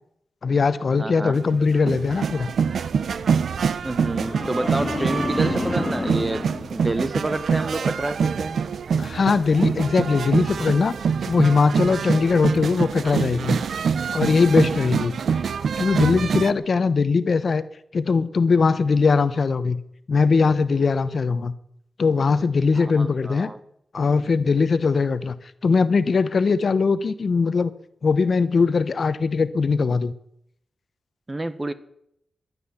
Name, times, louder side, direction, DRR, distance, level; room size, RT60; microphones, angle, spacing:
voice 1, 0.4-2.5 9.0-10.9 11.2-13.6 14.1-15.1 15.8-17.6 17.9-19.8 20.1-21.5 22.0-23.5 23.9-27.7 28.0-30.1, left 4 dB, 60° left, 0.9 m, -20 dB
voice 2, 1.0-1.4 3.8-8.6 14.8-15.2 22.7-23.6 31.3-31.7, right 2 dB, 25° right, 1.3 m, -28 dB
sound 1, 1.3-16.5, right 6 dB, 80° right, 0.7 m, -25 dB
sound 2, 4.0-7.5 7.9-8.3, left 3 dB, 35° left, 1.5 m, -31 dB
15.5 x 11.0 x 7.1 m
cardioid pair, 75°, 0 cm